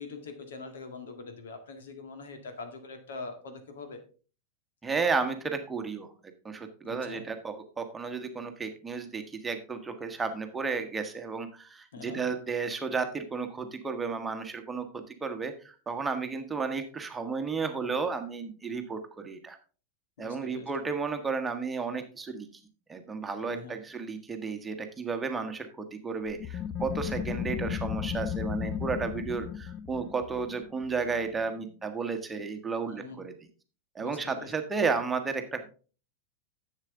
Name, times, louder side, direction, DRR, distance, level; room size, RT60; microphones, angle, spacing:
voice 1, 0.0-4.0 6.8-7.3 11.9-12.3 20.2-20.7 23.4-23.8 32.9-33.2 34.0-34.5, left 4 dB, 60° left, 7 dB, 1.9 m, -43 dB
voice 2, 4.8-6.1 6.4-19.6 20.2-22.5 22.9-33.3 33.9-35.7, right 4 dB, 15° right, 6 dB, 1.3 m, -33 dB
sound 1, 26.3-31.6, left 9 dB, 25° left, 0.7 m, -35 dB
11.0 x 7.6 x 3.7 m, 0.38 s
figure-of-eight pair, 90°, 0 cm